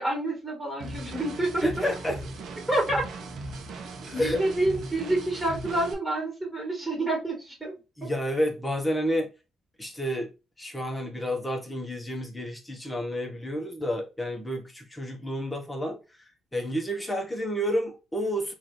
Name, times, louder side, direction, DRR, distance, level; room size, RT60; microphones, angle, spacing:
voice 1, 0.0-1.8 2.7-3.1 4.1-7.7, right 1 dB, 10° right, 2.1 m, -28 dB
sound 1, 0.8-5.9, right 2 dB, 70° right, 0.8 m, -38 dB
voice 2, 1.6-2.2 4.1-4.4 8.0-9.3 9.8-10.3 10.6-16.0 16.5-18.5, equal, 10° left, 1.2 m, -30 dB
3.9 x 2.6 x 3.2 m
cardioid pair, 90°, 0 cm